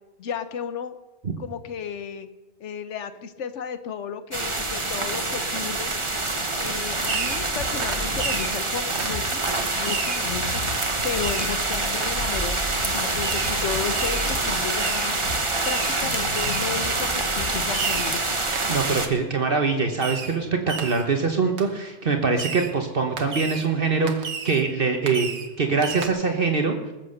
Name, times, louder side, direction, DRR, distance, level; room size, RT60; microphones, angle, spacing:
voice 1, 0.2-1.0 1.4-2.3 2.6-5.9 6.6-9.4 9.7-10.6 11.0-15.2 15.7-18.2, left 7 dB, 90° left, 10 dB, 1.2 m, -33 dB
sound 1, 4.3-19.1, right 2 dB, 25° right, 1.3 m, -26 dB
sound 2, 5.3-18.0, left 2 dB, 40° left, 1.9 m, -36 dB
Fireworks, 7.1-7.5 7.8-8.6 9.0-9.2 9.8-10.3 10.7-10.9 11.2-11.6 12.0-12.1 13.2-13.6 13.9-14.3 14.8-15.1 15.6-16.0 16.3-16.7 17.2-17.3 17.7-18.2 18.5-18.8 20.0-20.4 20.7-21.1 21.6-21.7 22.4-22.7 23.2-23.7 24.1-24.6 25.1-25.5 25.8-26.1, right 5 dB, 70° right, 1.5 m, -32 dB
voice 2, 18.7-25.3 25.6-26.7, right 4 dB, 55° right, 4 dB, 1.4 m, -23 dB
20.0 x 7.5 x 6.5 m, 1.1 s
omnidirectional pair, 1.2 m